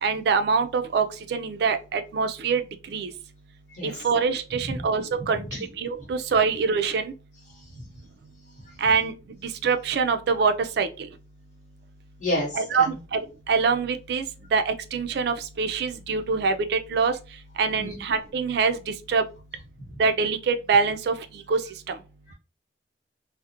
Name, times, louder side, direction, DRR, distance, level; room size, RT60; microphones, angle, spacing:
voice 1, 0.0-2.6 2.9-3.1 3.8-5.4 5.8-7.1 8.8-9.1 9.6-10.9 12.5-12.9 13.1-14.2 14.5-17.1 17.6-19.2 20.0-21.1 21.5-21.6, right 5 dB, 65° right, 0.3 m, -24 dB
voice 2, 3.7-4.1 4.6-4.8 5.5-5.7 6.0-6.1 7.5-7.8 8.6-8.7 12.2-13.0 17.8-18.0 19.8-19.9 22.3-22.4, left 1 dB, 45° left, 1.1 m, -32 dB
2.4 x 2.0 x 2.7 m
head